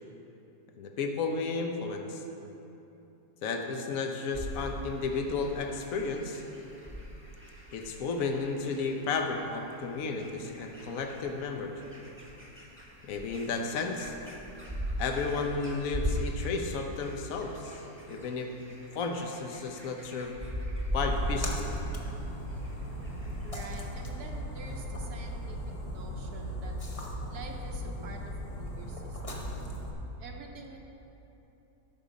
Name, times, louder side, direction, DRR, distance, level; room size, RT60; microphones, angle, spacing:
voice 1, 0.8-2.2 3.4-6.4 7.7-11.8 13.0-14.1 15.0-17.8 18.1-18.5 18.9-20.4 20.9-21.7, left 4 dB, 60° left, 4 dB, 1.2 m, -33 dB
sound 1, 4.3-23.9, equal, 10° right, 0.8 m, -39 dB
Splash splatter, 21.0-29.9, equal, 25° left, 0.8 m, -38 dB
voice 2, 23.4-25.6 25.8-26.9 27.3-29.5 29.9-30.8, right 3 dB, 75° right, 1 dB, 1.3 m, -47 dB
13.0 x 5.5 x 5.1 m, 2.9 s
omnidirectional pair, 1.7 m